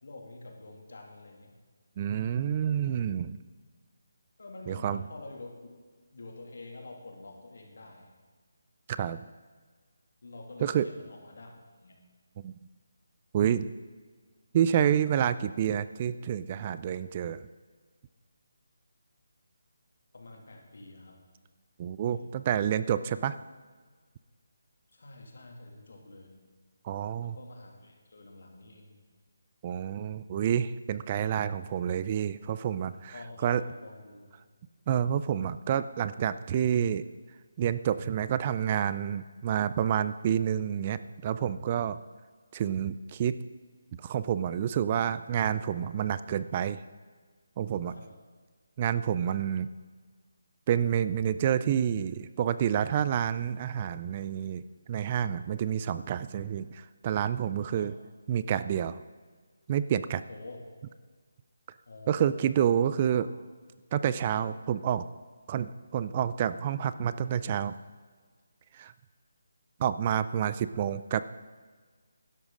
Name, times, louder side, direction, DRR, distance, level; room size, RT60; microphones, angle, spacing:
voice 1, 0.0-1.6 4.4-5.6 6.1-8.1 10.2-11.5 11.8-12.1 20.1-21.2 22.1-22.3 24.9-26.3 27.2-29.0 33.1-34.3 47.9-48.1 57.7-57.9 60.3-60.6 61.9-62.6 63.2-63.4 70.4-70.7, left 2 dB, 70° left, 1 dB, 2.5 m, -47 dB
voice 2, 2.0-3.4 4.7-5.0 8.9-9.2 10.6-10.9 12.4-12.5 13.3-13.7 14.5-17.4 21.8-23.4 26.8-27.4 29.6-33.1 33.4-33.6 34.9-37.0 37.6-42.0 42.5-43.4 44.0-46.8 47.6-47.9 48.8-49.7 50.7-54.6 54.9-57.9 58.3-59.0 59.7-60.2 62.1-63.3 63.9-65.0 65.5-67.7 68.7-68.9 69.8-71.2, right 9 dB, 30° right, 14 dB, 0.3 m, -28 dB
12.5 x 11.0 x 3.8 m, 1.5 s
figure-of-eight pair, 155°, 0 cm